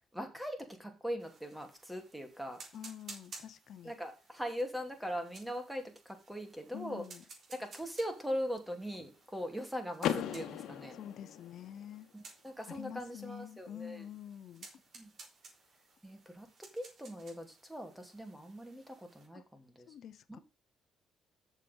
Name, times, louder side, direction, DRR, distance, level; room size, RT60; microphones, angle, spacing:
voice 1, 0.1-2.6 3.8-7.0 7.5-11.0 12.1-14.0 14.9-15.1 16.0-16.5 16.7-19.9 20.3-20.4, equal, 5° right, 2.7 m, -41 dB
sound 1, 1.2-19.3, right 4 dB, 60° right, 3.8 m, -57 dB
voice 2, 2.7-3.9 6.7-7.2 10.9-12.1 12.7-14.7 19.3-19.4 19.9-20.4, left 10 dB, 65° left, 0.8 m, -47 dB
Car / Door, 10.0-11.9, left 10 dB, 85° left, 1.3 m, -37 dB
7.5 x 7.0 x 5.3 m
cardioid pair, 90°, 0 cm